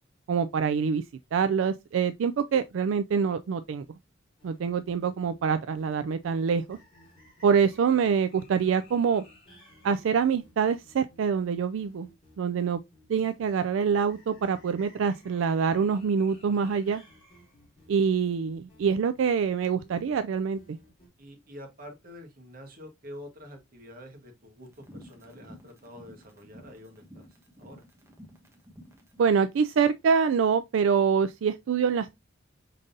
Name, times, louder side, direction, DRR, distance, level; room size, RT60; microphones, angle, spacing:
voice 1, 0.3-1.0 1.3-4.0 4.4-6.8 7.4-9.2 9.8-12.1 12.4-12.8 13.1-17.0 17.9-20.8 29.2-32.2, right 6 dB, 75° right, 0.3 m, -25 dB
sound 1, 4.4-21.1, equal, 30° left, 3.0 m, -56 dB
voice 2, 21.2-27.3 27.6-27.8, left 1 dB, 50° right, 1.5 m, -47 dB
sound 2, 24.7-29.5, equal, 15° right, 1.1 m, -51 dB
5.2 x 3.8 x 2.6 m
head